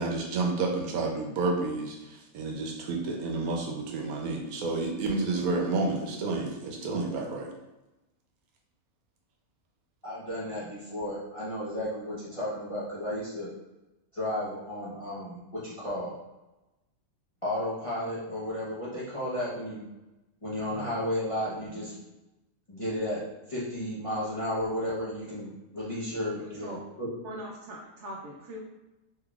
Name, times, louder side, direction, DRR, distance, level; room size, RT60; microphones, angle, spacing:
voice 1, 0.0-7.5, right 3 dB, 80° right, 1 dB, 1.1 m, -30 dB
voice 2, 10.0-13.5 14.1-16.1 17.4-19.8 20.4-22.0 22.7-23.2 23.5-27.1, left 1 dB, 30° left, -9 dB, 0.6 m, -33 dB
voice 3, 26.4-26.8 27.2-28.6, equal, 65° right, -2 dB, 0.8 m, -41 dB
3.6 x 3.1 x 2.3 m, 1.0 s
omnidirectional pair, 1.5 m